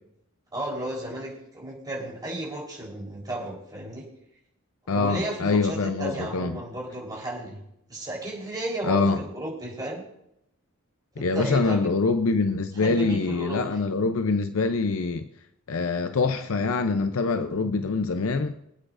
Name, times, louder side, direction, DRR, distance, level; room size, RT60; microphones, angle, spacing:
voice 1, 0.5-4.0 4.9-7.6 7.9-10.0 11.2-11.8 12.7-13.7, right 1 dB, 20° right, 4.0 m, -34 dB
voice 2, 4.9-6.6 8.8-9.2 11.2-15.2 15.7-18.5, left 4 dB, 80° left, 0.6 m, -24 dB
25.0 x 8.6 x 2.6 m
head